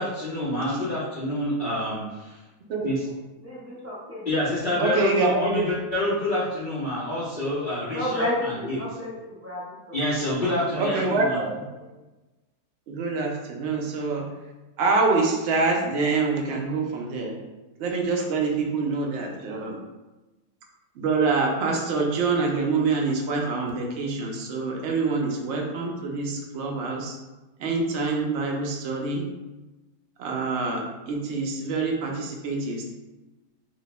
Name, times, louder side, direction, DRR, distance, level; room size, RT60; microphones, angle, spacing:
voice 1, 0.0-2.4 2.8-2.9 4.3-8.8 9.9-11.4, left 1 dB, 55° left, -9 dB, 0.5 m, -27 dB
voice 2, 3.4-4.3 4.6-4.8 7.9-9.9, left 1 dB, 15° right, -8 dB, 0.5 m, -31 dB
voice 3, 4.8-5.7 10.7-11.6 12.9-14.3 14.8-17.4 17.8-19.8 20.9-27.2 27.6-29.3 30.2-32.8, right 3 dB, 65° right, 0 dB, 0.6 m, -26 dB
2.9 x 2.2 x 4.0 m, 1.1 s
omnidirectional pair, 1.8 m